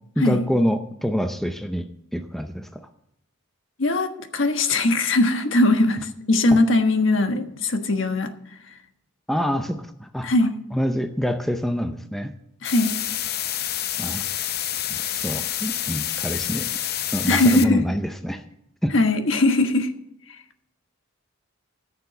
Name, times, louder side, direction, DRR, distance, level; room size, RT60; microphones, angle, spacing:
voice 1, 0.2-1.9 2.1-2.8 9.3-10.3 10.7-12.3 14.0-14.3 14.9-16.7 17.1-18.4 18.8-18.9, equal, ahead, 7 dB, 0.6 m, -26 dB
voice 2, 3.8-8.3 10.2-10.6 12.6-12.9 17.3-17.8 18.9-19.9, left 2 dB, 70° left, 6 dB, 1.3 m, -20 dB
sound 1, 12.6-17.6, left 11 dB, 50° left, 0.6 m, -28 dB
13.5 x 6.9 x 6.8 m, 0.76 s
head